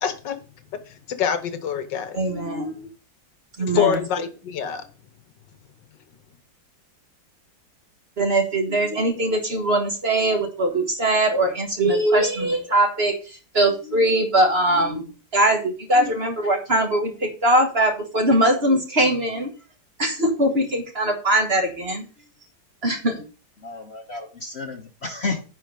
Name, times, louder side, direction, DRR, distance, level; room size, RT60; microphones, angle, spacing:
voice 1, 0.0-0.4 1.1-2.2 3.6-4.8, left 8 dB, 70° left, 10 dB, 1.6 m, -25 dB
voice 2, 2.1-2.9 3.6-4.0 8.2-19.5 20.0-22.0 22.8-23.2, right 1 dB, 35° right, 4 dB, 1.4 m, -21 dB
voice 3, 23.6-25.4, left 3 dB, 40° left, 4 dB, 1.1 m, -31 dB
9.9 x 4.4 x 5.2 m, 0.35 s
omnidirectional pair, 2.1 m